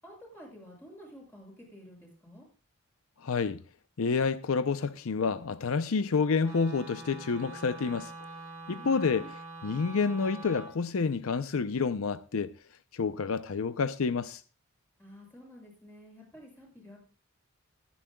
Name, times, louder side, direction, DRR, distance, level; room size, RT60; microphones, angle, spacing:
voice 1, 0.0-2.4 15.0-17.0, equal, 10° left, 6.7 m, -50 dB
voice 2, 3.2-3.6 4.0-8.1 8.7-9.2 9.6-12.5 12.9-14.4, left 5 dB, 75° left, 0.6 m, -29 dB
Wind instrument woodwind instrument, 6.4-10.8, right 3 dB, 15° right, 3.2 m, -44 dB
21.0 x 10.0 x 2.3 m
head